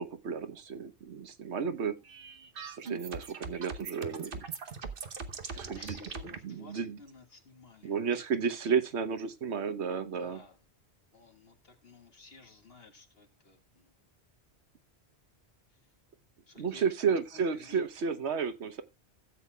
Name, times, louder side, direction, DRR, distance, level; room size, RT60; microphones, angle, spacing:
voice 1, 0.0-2.0 2.8-4.4 5.5-6.0 6.4-7.0 7.8-10.4 16.6-18.8, right 6 dB, 90° right, 1.3 m, -32 dB
sound 1, 2.0-6.4, right 5 dB, 55° right, 1.1 m, -41 dB
voice 2, 5.3-8.0 10.2-10.6 11.1-14.0 15.7-15.9 16.5-18.1, left 3 dB, 60° left, 2.1 m, -55 dB
16.5 x 8.3 x 2.3 m
omnidirectional pair, 1.1 m